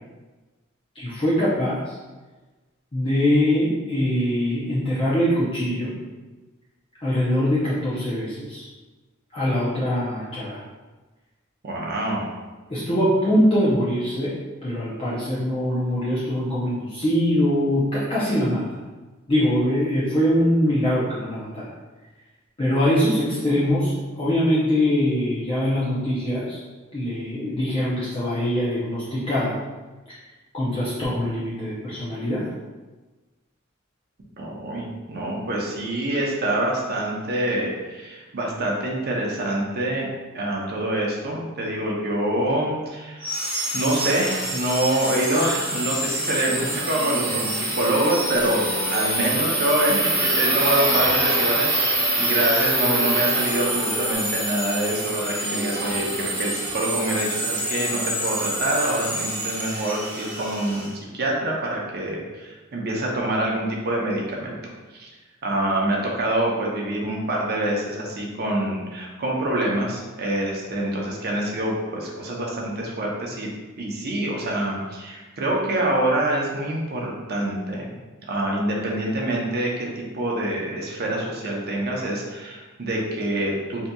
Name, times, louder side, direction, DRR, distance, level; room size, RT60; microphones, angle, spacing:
voice 1, 0.9-2.0 2.9-5.9 7.0-8.7 9.3-10.6 12.7-18.6 19.3-21.7 22.6-26.6 26.9-29.6 30.5-32.5, equal, 25° left, -9 dB, 0.5 m, -23 dB
voice 2, 11.6-12.2 34.4-43.3 43.7-60.9 61.1-64.6 64.9-65.1 65.4-73.5 73.8-77.9 78.3-79.7 80.0-83.9, right 1 dB, 50° right, -2 dB, 0.7 m, -26 dB
sound 1, 43.2-60.9, right 1 dB, 20° right, 1.2 m, -26 dB
sound 2, 48.3-54.2, equal, 75° left, 0.9 m, -33 dB
3.9 x 2.7 x 2.3 m, 1.2 s
head